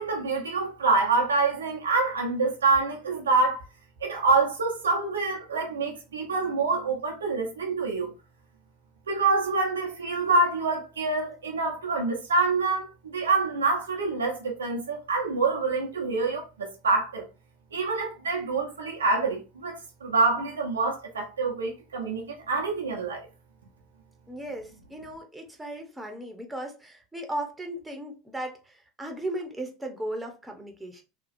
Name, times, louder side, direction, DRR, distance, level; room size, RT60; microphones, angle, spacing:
voice 1, 0.0-3.6 4.0-8.1 9.1-17.2 17.7-23.2, right 3 dB, 80° right, 0.7 m, -26 dB
voice 2, 24.3-31.0, right 1 dB, 10° right, 0.8 m, -36 dB
2.9 x 2.3 x 2.5 m
figure-of-eight pair, 75°, 0 cm